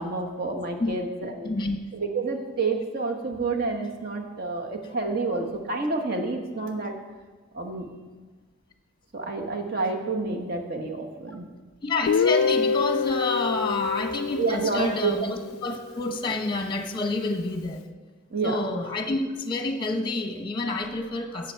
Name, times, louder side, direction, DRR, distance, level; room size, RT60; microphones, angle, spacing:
voice 1, 0.0-1.5 1.9-6.9 7.5-7.9 9.1-11.5 14.4-15.2 18.3-18.6, right 3 dB, 50° right, 2 dB, 1.2 m, -29 dB
voice 2, 1.4-1.8 11.8-17.8 18.4-21.5, left 2 dB, 25° left, 6 dB, 1.0 m, -28 dB
Guitar, 12.1-15.9, left 5 dB, 75° left, 0.3 m, -26 dB
17.0 x 6.6 x 4.6 m, 1.4 s
head